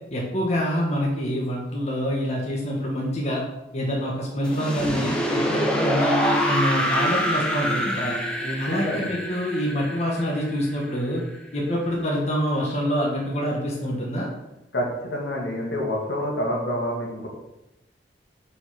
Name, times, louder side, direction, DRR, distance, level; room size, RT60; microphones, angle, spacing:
voice 1, 0.1-3.4 3.7-8.2 8.6-11.2 11.5-14.3, equal, 40° left, -3 dB, 1.6 m, -26 dB
sound 1, 4.4-11.4, equal, 5° left, 1.1 m, -26 dB
voice 2, 8.4-9.1 14.7-17.3, equal, 80° left, -2 dB, 2.3 m, -28 dB
6.2 x 5.9 x 5.8 m, 0.93 s
head